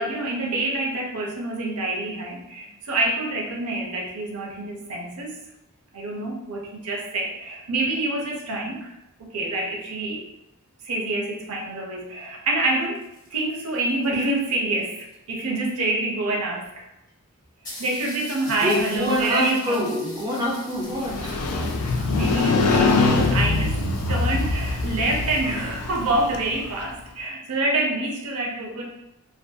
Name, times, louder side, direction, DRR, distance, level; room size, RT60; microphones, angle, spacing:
voice 1, 0.0-5.4 5.9-8.9 9.2-10.3 10.8-13.0 13.3-16.9 17.8-19.8 22.0-23.8 24.1-28.8, right 2 dB, 80° right, 0 dB, 0.6 m, -27 dB
sound 1, 12.8-15.4 16.3-16.4 16.6-16.7 17.1-17.2 17.6-25.8, left 1 dB, 15° left, 0.8 m, -44 dB
voice 2, 18.6-21.5, left 1 dB, 20° right, -3 dB, 0.3 m, -26 dB
Motorcycle, 20.9-26.8, left 3 dB, 90° left, 0.3 m, -23 dB
2.5 x 2.5 x 2.2 m, 0.92 s
head